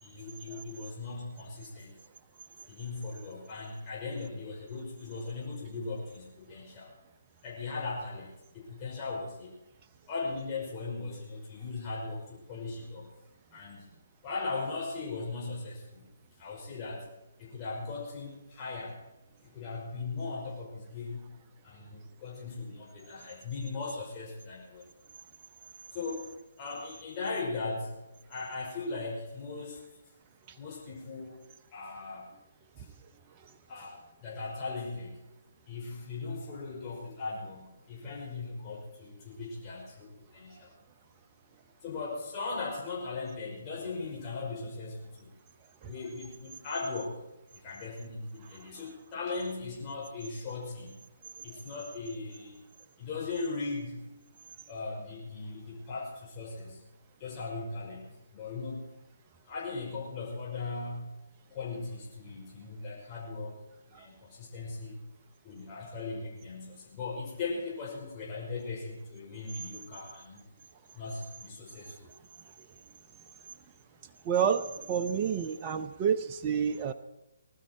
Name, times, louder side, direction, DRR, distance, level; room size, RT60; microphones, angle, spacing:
voice 1, 0.0-2.0 2.7-6.9 7.4-9.5 10.1-13.1 13.5-13.9 14.2-16.0 16.4-17.0 17.4-18.9 19.5-21.3 21.6-24.8 25.9-26.3 26.6-27.9 28.3-29.8 30.6-31.4 31.7-32.3 33.7-34.0 34.2-35.2 35.7-40.7 41.8-45.3 45.9-47.1 47.6-51.0 51.4-52.6 53.0-54.0 54.7-56.8 57.2-58.8 59.5-61.1 61.5-63.6 63.9-64.9 65.4-70.4 71.0-71.9, left 3 dB, 25° left, -5 dB, 5.5 m, -38 dB
voice 2, 74.2-76.9, right 7 dB, 30° right, 9 dB, 0.7 m, -29 dB
20.0 x 12.5 x 4.6 m, 0.99 s
figure-of-eight pair, 140°, 0 cm